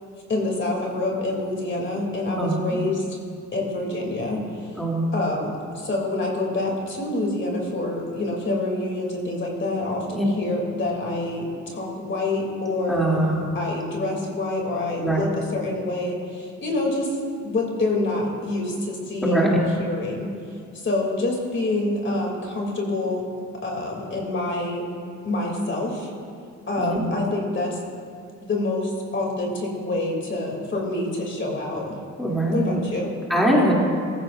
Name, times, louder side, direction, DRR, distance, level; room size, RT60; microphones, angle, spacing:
voice 1, 0.3-3.0 3.5-4.8 5.1-13.2 13.5-17.2 17.4-20.3 20.8-23.2 23.6-24.9 25.2-26.1 26.7-27.8 28.4-31.9 32.5-33.1, left 2 dB, 40° left, -1 dB, 2.9 m, -27 dB
voice 2, 2.4-2.8 4.8-5.1 10.1-10.2 12.9-13.5 15.0-15.3 19.2-19.5 26.8-27.0 32.2-32.8 33.3-33.7, right 1 dB, ahead, -5 dB, 2.8 m, -22 dB
15.5 x 14.5 x 2.6 m, 2.3 s
cardioid pair, 90°, 30 cm